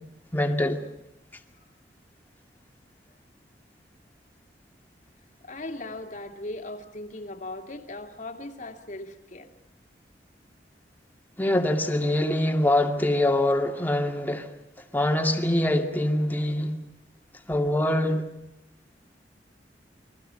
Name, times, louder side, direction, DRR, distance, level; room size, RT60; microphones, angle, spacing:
voice 1, 0.3-0.8 11.4-14.5 14.9-16.7 17.5-18.3, left 1 dB, 10° left, 2.3 m, -24 dB
voice 2, 5.4-9.5, left 2 dB, 45° left, 2.4 m, -38 dB
29.5 x 22.5 x 5.7 m
head